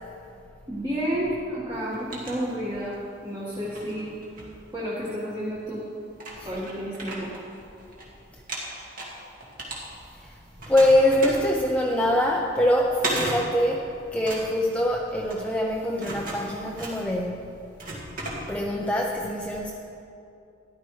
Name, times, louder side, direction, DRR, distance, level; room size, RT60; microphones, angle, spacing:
voice 1, 0.7-3.0 3.2-4.1 4.7-5.8 6.4-7.3, equal, 25° right, -7 dB, 1.6 m, -30 dB
sound 1, 1.7-3.0 3.5-5.2 5.8-5.9 6.2-8.1 8.3-10.3 10.6-18.9, right 2 dB, 50° right, 2.0 m, -36 dB
voice 2, 10.7-17.5 18.5-19.7, left 1 dB, 5° left, -2 dB, 0.6 m, -24 dB
13.5 x 11.5 x 3.2 m, 2.6 s
head